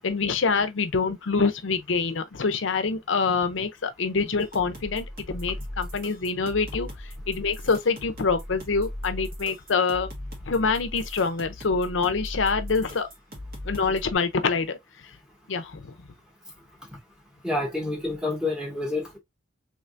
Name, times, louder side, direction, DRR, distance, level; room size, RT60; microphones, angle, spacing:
voice 1, 0.0-10.1 10.5-13.1 13.6-14.8 15.0-15.1 15.5-15.9, left 4 dB, 70° left, 0.6 m, -26 dB
sound 1, 4.4-14.1, left 1 dB, 50° right, 1.5 m, -38 dB
voice 2, 17.4-19.2, left 2 dB, 5° right, 1.2 m, -28 dB
3.3 x 3.2 x 2.5 m
head